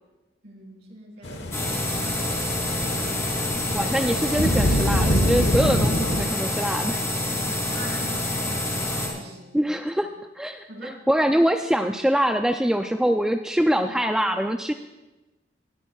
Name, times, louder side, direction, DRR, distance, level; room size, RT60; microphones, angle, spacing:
voice 1, 0.4-2.4 7.3-9.7 10.7-11.0, right 1 dB, 65° right, -3 dB, 3.9 m, -42 dB
sound 1, 1.2-6.2, equal, 65° left, 1.2 m, -25 dB
sound 2, 1.5-9.1, left 1 dB, 15° left, 3.1 m, -27 dB
voice 2, 3.7-7.0 9.5-10.1 10.4-14.7, equal, 5° right, 5 dB, 0.3 m, -23 dB
19.5 x 13.5 x 2.3 m, 1.1 s
head